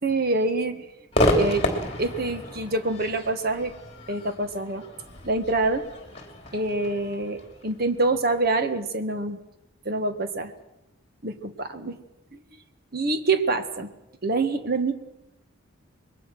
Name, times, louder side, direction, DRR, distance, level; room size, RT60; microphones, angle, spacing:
voice 1, 0.0-0.9 1.3-1.7 2.0-3.7 4.1-4.8 5.2-5.9 6.5-9.4 9.8-10.5 11.2-12.0 12.3-12.4 12.9-13.9 14.2-14.9, right 2 dB, 45° right, 9 dB, 1.6 m, -26 dB
Crowd / Fireworks, 1.1-8.5, left 1 dB, 30° left, 3.2 m, -30 dB
25.5 x 21.5 x 6.3 m, 0.90 s
head